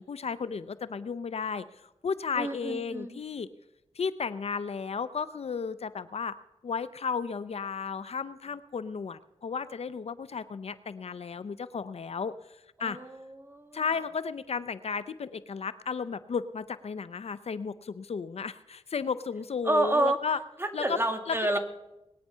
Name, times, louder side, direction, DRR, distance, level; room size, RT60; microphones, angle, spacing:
voice 1, 0.0-3.5 4.0-6.4 6.6-12.3 12.8-13.0 13.7-20.4 20.7-21.0 21.3-21.6, left 5 dB, 70° left, 15 dB, 0.6 m, -34 dB
voice 2, 2.4-3.2 12.8-13.8 19.6-20.2 20.6-21.6, right 1 dB, 20° right, 5 dB, 1.9 m, -29 dB
20.0 x 9.5 x 5.6 m, 0.94 s
wide cardioid pair, 65°, 11 cm